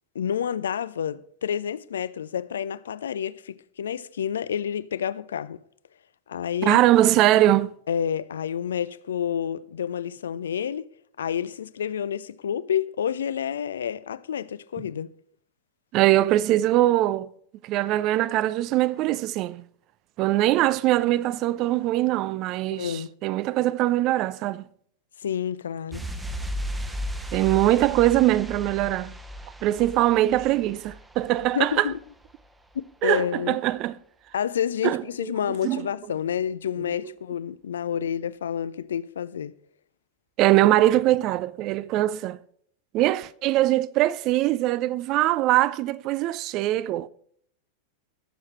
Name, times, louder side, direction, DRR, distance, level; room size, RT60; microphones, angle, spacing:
voice 1, 0.1-5.6 6.3-6.8 7.9-10.9 11.2-15.1 22.7-23.1 25.2-26.1 31.5-31.9 33.0-33.6 34.3-39.5, left 8 dB, 65° left, 0.4 m, -29 dB
voice 2, 6.6-7.7 15.9-17.3 17.6-19.6 20.2-24.7 27.3-29.1 29.6-31.9 33.0-34.0 34.8-35.0 35.5-35.9 40.4-42.4 42.9-47.1, right 15 dB, 40° right, 0.4 m, -22 dB
sound 1, 25.9-32.4 32.7-32.8, equal, 10° right, 1.0 m, -36 dB
18.5 x 7.2 x 3.1 m
figure-of-eight pair, 90°, 0 cm